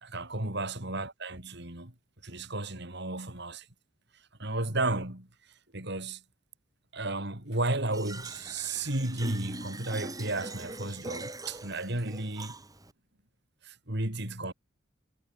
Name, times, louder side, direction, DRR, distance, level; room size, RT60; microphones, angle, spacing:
voice 1, 0.0-1.9 2.2-3.7 4.1-5.3 5.7-6.2 6.9-12.5 13.6-14.5, right 2 dB, 55° right, 3.9 m, -33 dB
Fill (with liquid), 7.9-12.9, right 2 dB, 15° right, 6.9 m, -42 dB
head